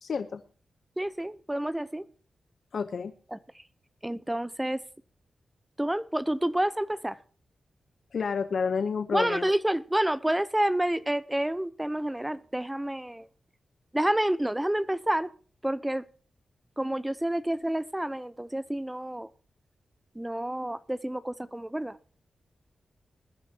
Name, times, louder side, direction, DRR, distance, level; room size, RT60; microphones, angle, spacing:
voice 1, 0.0-0.4 2.7-3.1 8.1-9.5, left 5 dB, 70° left, 0.8 m, -29 dB
voice 2, 1.0-2.1 3.3-3.6 4.0-4.8 5.8-7.2 9.1-13.3 13.9-15.3 15.6-16.0 16.8-19.3 20.1-22.0, right 1 dB, 10° right, 0.7 m, -29 dB
21.0 x 11.0 x 2.9 m
cardioid pair, 65°, 0 cm